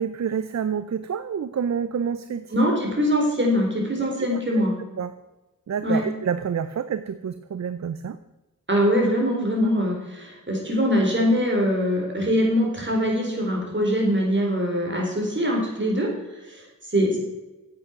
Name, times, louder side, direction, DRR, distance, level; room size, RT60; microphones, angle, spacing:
voice 1, 0.0-2.5 4.6-4.7 5.0-5.1 5.7-8.2, right 7 dB, 55° right, 13 dB, 0.6 m, -28 dB
voice 2, 2.5-4.7 5.8-6.0 8.7-16.1 16.5-16.6 16.9-17.2, equal, 35° right, -1 dB, 4.2 m, -22 dB
9.1 x 7.9 x 5.9 m, 1.1 s
cardioid pair, 55°, 33 cm